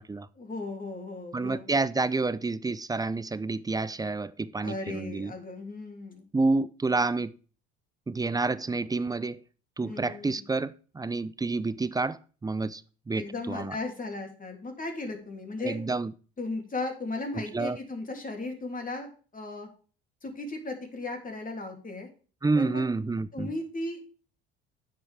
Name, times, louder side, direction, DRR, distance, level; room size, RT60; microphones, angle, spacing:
voice 1, 0.4-1.7 4.6-6.2 9.8-10.4 13.1-15.8 16.4-19.1 19.3-19.7 20.2-22.1 22.5-22.8 23.3-24.0, left 2 dB, 25° left, 2.9 m, -36 dB
voice 2, 1.3-5.3 6.3-7.3 8.1-9.4 9.8-12.2 12.4-12.8 13.1-13.7 15.6-16.1 17.3-17.8 22.4-23.5, right 3 dB, 10° right, 0.5 m, -29 dB
9.9 x 7.4 x 3.5 m
hypercardioid pair, 65°, 31 cm